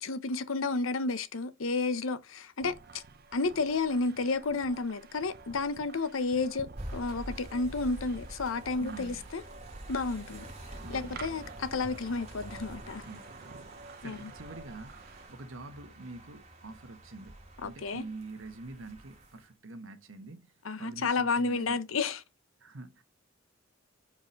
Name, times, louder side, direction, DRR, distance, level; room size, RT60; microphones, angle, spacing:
voice 1, 0.0-3.0 3.3-9.4 9.9-10.5 10.9-13.0 14.0-14.3 17.6-18.0 20.6-22.2, left 3 dB, 90° left, 0.7 m, -31 dB
sound 1, 2.6-15.3, right 4 dB, 50° right, 0.7 m, -51 dB
sound 2, 6.8-19.5, right 1 dB, 35° right, 1.8 m, -47 dB
voice 2, 8.8-9.3 10.8-11.4 13.0-20.5 20.8-21.8 22.6-23.0, right 2 dB, 75° right, 1.2 m, -46 dB
4.9 x 4.2 x 5.1 m
head